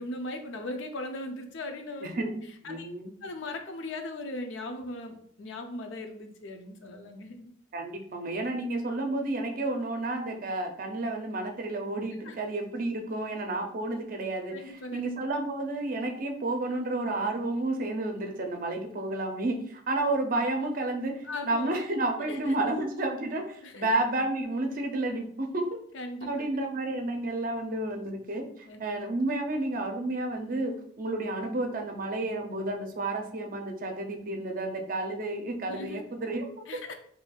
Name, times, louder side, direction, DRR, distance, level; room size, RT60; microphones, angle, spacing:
voice 1, 0.0-2.3 2.6-2.9 3.2-7.5 12.2-12.4 14.5-15.0 21.2-21.8 22.2-22.5 23.6-23.9 25.9-26.3 28.7-28.8 35.6-36.0 36.7-36.9, left 2 dB, 75° left, 6 dB, 0.5 m, -38 dB
voice 2, 2.0-3.1 7.7-25.8 26.2-36.5, right 2 dB, 45° right, 3 dB, 0.6 m, -31 dB
4.3 x 2.7 x 2.3 m, 0.62 s
head